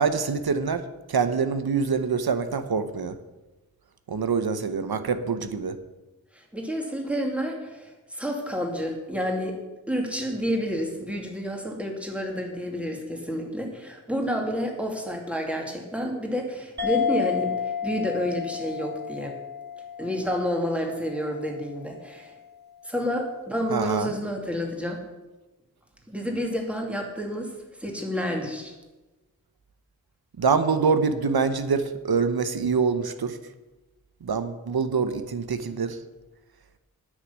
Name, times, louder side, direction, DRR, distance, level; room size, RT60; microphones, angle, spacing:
voice 1, 0.0-3.2 4.1-5.8 23.7-24.1 30.4-33.4 34.2-36.0, right 5 dB, 80° right, 11 dB, 0.9 m, -25 dB
voice 2, 6.3-9.6 9.9-17.5 17.8-19.4 20.0-22.3 22.8-25.0 26.1-28.7, equal, 5° right, 1 dB, 2.5 m, -29 dB
sound 1, 16.8-21.7, left 8 dB, 30° right, 1.9 m, -31 dB
9.8 x 6.5 x 8.8 m, 1.1 s
wide cardioid pair, 65°, 36 cm